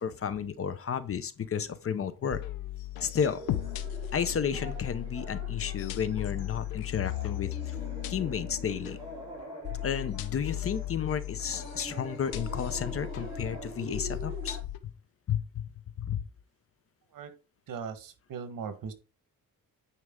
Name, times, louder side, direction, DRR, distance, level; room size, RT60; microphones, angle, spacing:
voice 1, 0.0-2.4 3.0-3.4 4.1-7.8 8.1-9.0 9.8-14.6 15.3-15.6 16.0-16.2, left 7 dB, 40° left, 0.7 m, -32 dB
sound 1, 2.3-14.8, left 12 dB, 90° left, 0.8 m, -37 dB
sound 2, 3.2-14.6, right 2 dB, 15° right, 3.8 m, -45 dB
voice 2, 17.7-18.9, right 6 dB, 65° right, 1.4 m, -39 dB
9.6 x 4.6 x 3.7 m
cardioid pair, 135°, 35 cm